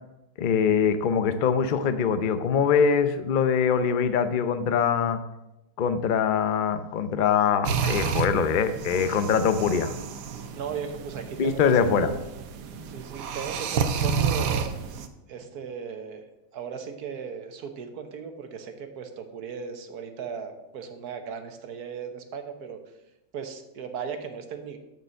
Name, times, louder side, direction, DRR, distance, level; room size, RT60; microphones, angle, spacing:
voice 1, 0.4-5.2 5.8-10.0 11.4-12.1, left 6 dB, 90° left, 10 dB, 0.4 m, -23 dB
sound 1, 7.6-15.1, right 6 dB, 80° right, 1.4 m, -30 dB
voice 2, 10.5-12.2 12.8-14.7 15.3-16.3 16.5-22.8 23.3-24.8, right 6 dB, 65° right, 6 dB, 1.6 m, -36 dB
6.8 x 6.8 x 7.5 m, 0.92 s
omnidirectional pair, 1.8 m